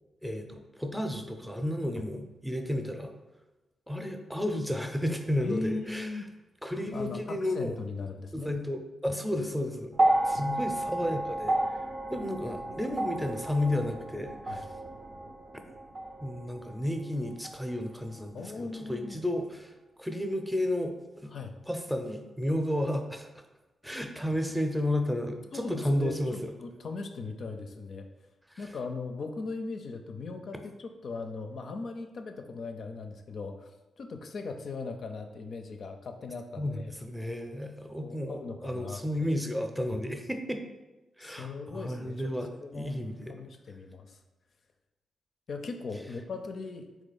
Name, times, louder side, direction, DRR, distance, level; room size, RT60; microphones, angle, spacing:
voice 1, 0.2-3.1 3.9-6.2 6.6-7.8 8.3-9.9 10.2-11.8 12.1-14.7 16.2-19.7 20.0-21.3 21.7-23.4 23.8-26.5 28.5-28.6 36.6-40.6 41.2-43.3, left 1 dB, 5° right, 5 dB, 0.6 m, -32 dB
voice 2, 5.4-6.3 6.9-8.5 10.3-10.6 11.0-11.1 14.5-14.6 18.3-19.2 21.3-21.6 25.5-28.1 28.6-33.7 34.0-36.9 38.0-39.3 39.9-40.0 41.2-42.3 42.6-43.0 43.3-44.2 45.5-46.8, left 3 dB, 65° left, 5 dB, 0.4 m, -39 dB
sound 1, 9.9-18.3 19.3-19.4, right 1 dB, 50° right, 0.5 m, -32 dB
3.8 x 3.0 x 4.1 m, 1.1 s
supercardioid pair, 45°, 0 cm